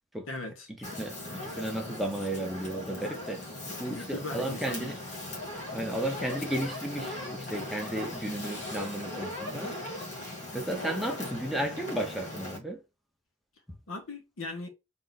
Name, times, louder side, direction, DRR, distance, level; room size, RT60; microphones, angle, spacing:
voice 1, 0.3-0.7 3.9-5.0 13.9-14.7, left 2 dB, 85° left, 1.2 m, -38 dB
Fire, 0.8-12.6, left 1 dB, 35° left, 1.7 m, -39 dB
voice 2, 0.8-3.4 3.8-5.0 5.7-9.7 10.5-12.8, right 1 dB, ahead, 0.7 m, -34 dB
3.8 x 2.6 x 4.0 m
head